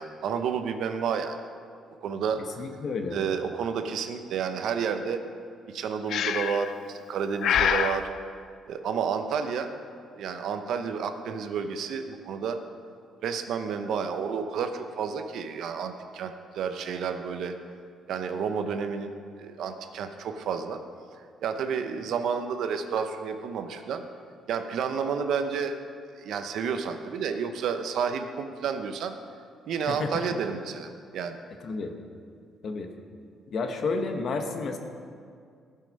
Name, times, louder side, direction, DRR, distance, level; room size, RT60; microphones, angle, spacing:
voice 1, 0.0-1.4 2.0-2.6 3.1-5.2 5.7-8.1 8.7-9.7 10.1-12.6 13.2-17.5 18.1-19.1 19.4-20.8 21.4-24.0 24.5-25.8 26.2-29.1 29.7-31.4, right 6 dB, 70° right, 7 dB, 0.8 m, -30 dB
voice 2, 2.6-3.2 29.9-30.2 31.6-31.9 32.6-32.9 33.5-34.8, left 4 dB, 50° left, 5 dB, 1.1 m, -31 dB
Breathing, 6.1-6.7 7.4-8.0, left 8 dB, 65° left, 0.4 m, -25 dB
15.5 x 5.7 x 5.3 m, 2.2 s
cardioid pair, 130°, 0 cm